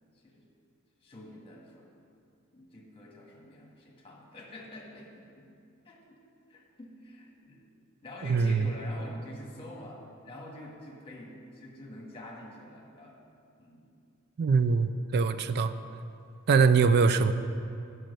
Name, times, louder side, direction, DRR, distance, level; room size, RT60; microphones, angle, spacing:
voice 1, 0.1-0.5 1.0-1.9 2.5-5.5 5.8-6.2 6.5-7.6 8.0-13.2 13.6-13.9, left 1 dB, 25° left, -2 dB, 1.6 m, -46 dB
voice 2, 8.2-8.6 14.4-15.7 16.5-17.3, right 5 dB, 45° right, 11 dB, 0.4 m, -23 dB
9.0 x 6.3 x 6.6 m, 2.5 s
head